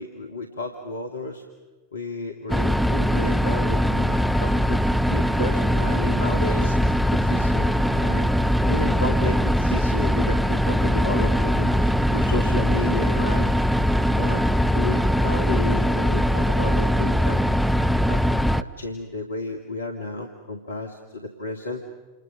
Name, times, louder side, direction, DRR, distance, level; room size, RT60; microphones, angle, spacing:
voice 1, 0.0-1.4 1.9-4.8 5.1-6.8 7.1-8.3 8.7-13.5 14.2-14.4 14.7-17.4 18.0-18.2 18.5-21.8, left 2 dB, 75° left, 5 dB, 2.1 m, -32 dB
sound 1, 2.5-18.6, equal, ahead, 0.8 m, -21 dB
29.0 x 28.0 x 6.5 m, 1.3 s
figure-of-eight pair, 90°, 0 cm